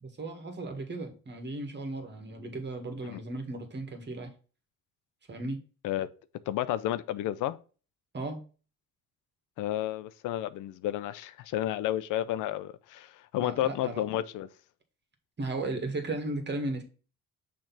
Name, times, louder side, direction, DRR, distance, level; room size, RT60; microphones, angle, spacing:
voice 1, 0.0-4.3 5.3-5.6 8.1-8.4 13.4-14.0 15.4-16.8, right 2 dB, 35° right, 1.9 m, -35 dB
voice 2, 6.5-7.6 9.6-14.5, left 13 dB, 90° left, 0.6 m, -31 dB
6.4 x 3.5 x 5.9 m
cardioid pair, 90°, 30 cm